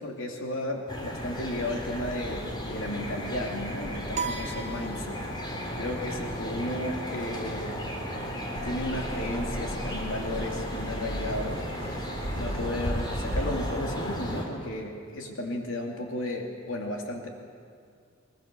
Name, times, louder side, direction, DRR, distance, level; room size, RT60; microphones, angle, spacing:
voice 1, 0.0-5.2 5.7-7.8 8.6-11.7 12.3-17.3, left 1 dB, 80° left, 1 dB, 2.6 m, -34 dB
sound 1, 0.9-14.5, equal, 25° left, 3.0 m, -34 dB
sound 2, 4.1-5.6, right 5 dB, 35° right, 0.9 m, -36 dB
sound 3, 8.5-13.8, right 1 dB, 55° right, 1.7 m, -39 dB
21.5 x 21.0 x 6.7 m, 2.3 s
head